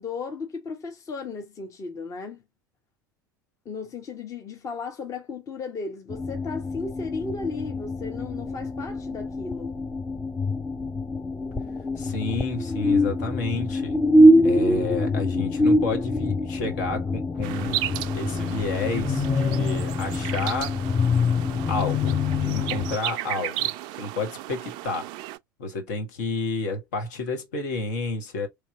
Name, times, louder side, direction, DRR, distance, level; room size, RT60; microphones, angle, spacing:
voice 1, 0.0-2.4 3.6-9.7, left 4 dB, 30° left, 1.0 m, -35 dB
sound 1, 6.1-23.0, left 1 dB, 15° left, 0.5 m, -24 dB
voice 2, 12.0-14.0 14.4-20.8 21.7-23.7 24.0-25.1 25.6-28.5, left 3 dB, 60° left, 1.3 m, -31 dB
sound 2, 17.4-25.4, right 14 dB, 45° right, 0.4 m, -34 dB
3.3 x 2.9 x 3.8 m
figure-of-eight pair, 75°, 11 cm